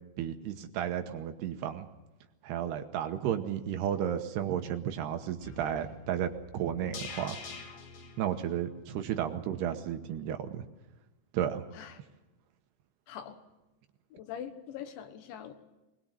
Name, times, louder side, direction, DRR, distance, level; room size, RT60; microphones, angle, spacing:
voice 1, 0.2-1.9 2.4-7.4 8.2-10.6 11.3-11.6, right 10 dB, 75° right, 7 dB, 2.9 m, -33 dB
sound 1, 5.4-9.6 9.9-10.0, left 5 dB, 55° left, 3.8 m, -47 dB
voice 2, 13.1-13.4 14.1-15.5, left 9 dB, 80° left, 8 dB, 3.8 m, -42 dB
21.5 x 21.0 x 7.8 m, 1.0 s
omnidirectional pair, 5.2 m